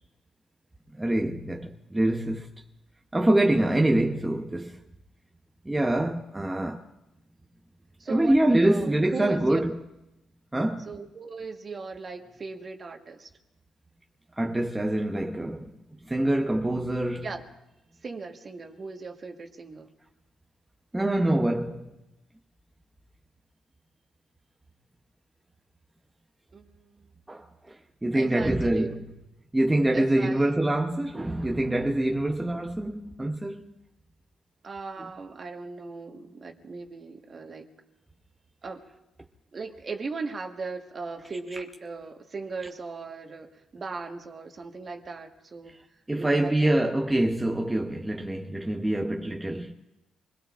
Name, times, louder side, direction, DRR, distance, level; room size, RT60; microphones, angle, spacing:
voice 1, 0.9-2.5 3.1-4.8 5.6-6.9 8.1-9.8 10.5-10.9 14.4-15.7 16.0-17.3 20.9-21.9 27.3-29.0 29.5-33.7 46.1-49.8, right 1 dB, 10° right, 0.8 m, -25 dB
voice 2, 8.0-8.4 8.6-9.6 10.9-13.3 17.2-17.5 18.0-19.9 26.5-27.1 28.1-29.0 29.9-30.5 34.6-37.7 38.6-38.8 39.5-46.8, right 4 dB, 40° right, 1.5 m, -38 dB
26.5 x 21.0 x 2.5 m
cardioid pair, 90°, 0 cm